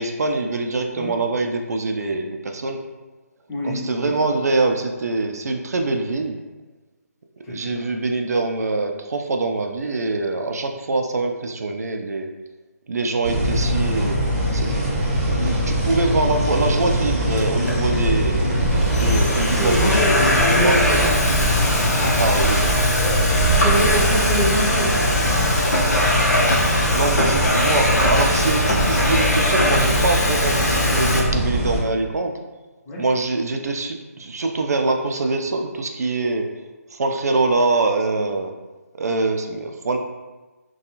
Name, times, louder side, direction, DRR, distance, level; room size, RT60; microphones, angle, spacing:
voice 1, 0.0-2.8 3.6-6.4 7.5-12.3 12.9-14.2 14.5-14.9 15.3-18.4 18.9-20.1 20.3-21.1 22.2-22.7 26.9-32.4 33.0-36.5 36.9-38.5 39.0-40.0, right 3 dB, 75° right, 4 dB, 0.3 m, -24 dB
voice 2, 3.5-4.1 7.4-7.8 18.4-18.6 19.0-21.3 23.0-25.4 32.9-33.0, equal, 10° left, -8 dB, 0.5 m, -26 dB
sound 1, 13.2-31.8, equal, 25° right, 0.7 m, -22 dB
Domestic sounds home sounds, 17.4-17.8 18.5-31.2, left 1 dB, 90° left, 0.7 m, -22 dB
2.4 x 2.2 x 2.9 m, 1.2 s
hypercardioid pair, 165°, 9 cm